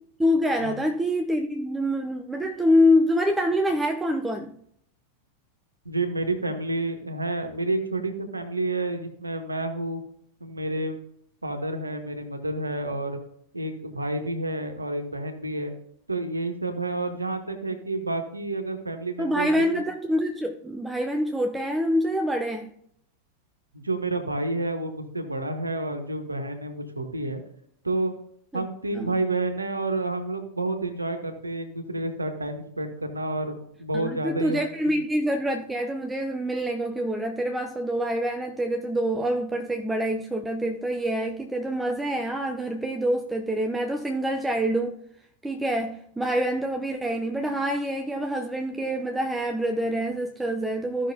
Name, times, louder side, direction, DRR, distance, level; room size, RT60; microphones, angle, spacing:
voice 1, 0.2-4.5 19.2-22.7 28.5-28.7 28.9-29.1 33.9-45.0 45.4-51.1, equal, 10° right, 0.6 m, -26 dB
voice 2, 5.8-10.0 10.4-11.0 11.4-13.2 13.5-15.7 16.1-19.8 23.7-27.4 27.8-28.1 28.5-35.0, right 2 dB, 80° right, 1.3 m, -29 dB
15.0 x 6.0 x 2.8 m
figure-of-eight pair, 90°, 0 cm